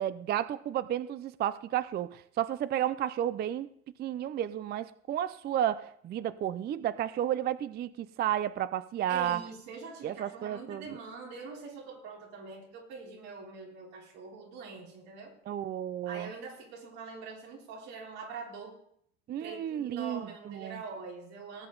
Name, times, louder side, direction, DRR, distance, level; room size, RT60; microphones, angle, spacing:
voice 1, 0.0-3.7 4.0-9.4 10.0-10.9 15.5-16.3 19.3-20.2 20.5-20.8, right 11 dB, 30° right, 0.4 m, -32 dB
voice 2, 9.1-15.3 16.0-18.8 19.4-21.7, right 4 dB, 85° right, 3.9 m, -44 dB
18.0 x 7.7 x 3.9 m
supercardioid pair, 115°, 34 cm